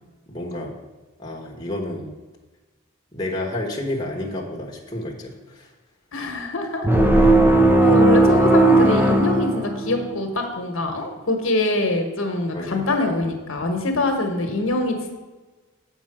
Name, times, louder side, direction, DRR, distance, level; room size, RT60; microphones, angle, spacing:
voice 1, 0.3-0.7 1.2-2.1 3.1-5.7 12.5-12.9, left 1 dB, 20° left, -1 dB, 1.2 m, -30 dB
voice 2, 6.1-6.9 7.8-15.0, left 2 dB, 65° left, 5 dB, 1.3 m, -24 dB
sound 1, 6.8-10.2, right 2 dB, 10° right, 0.5 m, -16 dB
7.6 x 5.5 x 6.0 m, 1.2 s
head